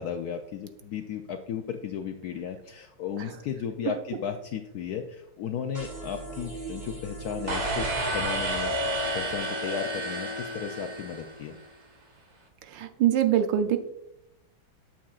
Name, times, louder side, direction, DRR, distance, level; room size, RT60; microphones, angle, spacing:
voice 1, 0.0-8.8 9.1-11.6, left 7 dB, 75° left, 5 dB, 0.9 m, -35 dB
sound 1, 5.7-8.0, right 2 dB, 25° right, 1.8 m, -39 dB
sound 2, 7.5-11.7, right 1 dB, 40° right, 1.5 m, -30 dB
voice 2, 12.7-13.8, right 10 dB, 75° right, 8 dB, 1.3 m, -24 dB
8.6 x 7.0 x 2.4 m, 0.81 s
omnidirectional pair, 2.1 m